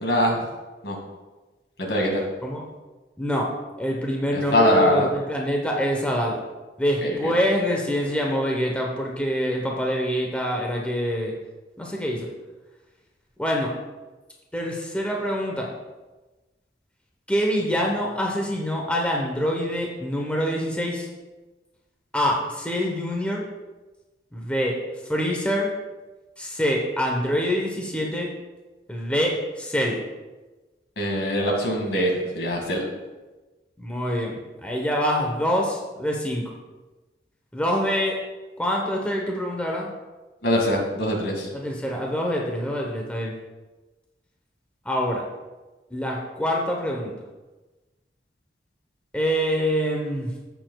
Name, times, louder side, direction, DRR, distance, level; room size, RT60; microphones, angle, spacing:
voice 1, 0.0-0.4 0.8-1.0 1.8-2.2 4.3-5.1 7.0-7.3 31.0-32.8 40.4-41.5, equal, 70° left, 0 dB, 2.0 m, -23 dB
voice 2, 3.2-3.5 3.8-6.4 6.8-11.3 11.8-12.3 13.4-13.7 14.5-15.7 17.3-21.1 22.1-23.5 24.3-24.8 25.1-25.7 26.4-28.3 28.9-30.0 33.8-36.5 37.5-38.2 38.6-39.9 41.5-43.3 44.8-45.3 45.9-47.1 49.1-50.3, equal, 5° left, -1 dB, 0.9 m, -25 dB
14.0 x 6.9 x 2.3 m, 1.2 s
head